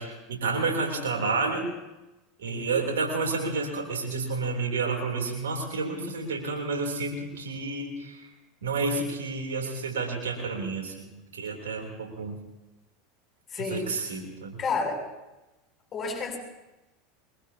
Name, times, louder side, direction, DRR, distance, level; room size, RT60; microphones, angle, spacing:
voice 1, 0.0-1.7 2.4-8.2 8.6-11.1 11.4-12.4 13.7-14.6, right 3 dB, 80° right, 1 dB, 3.3 m, -30 dB
voice 2, 2.5-2.8 13.5-13.9 14.6-15.0 15.9-16.4, left 4 dB, 35° left, 1 dB, 7.6 m, -31 dB
23.0 x 21.5 x 2.9 m, 1.0 s
hypercardioid pair, 85°, 0 cm